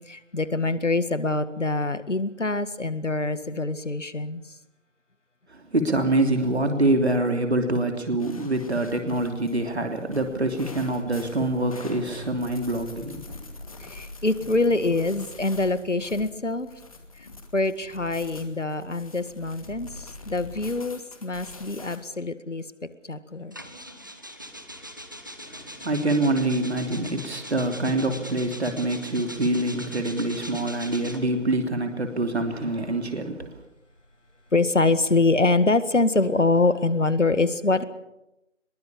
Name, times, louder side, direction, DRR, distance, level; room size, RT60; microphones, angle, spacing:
voice 1, 0.1-4.4 13.8-16.7 17.2-17.3 17.5-22.6 23.1-23.6 34.5-37.8, left 3 dB, 70° left, 13 dB, 2.0 m, -24 dB
voice 2, 5.5-13.5 25.4-33.6, right 2 dB, 60° right, 5 dB, 3.1 m, -25 dB
sound 1, 8.2-22.0, left 3 dB, 30° left, 2.4 m, -43 dB
sound 2, 23.5-31.4 32.3-34.8, equal, 15° right, 0.9 m, -41 dB
23.0 x 22.0 x 7.1 m, 0.91 s
figure-of-eight pair, 160°, 37 cm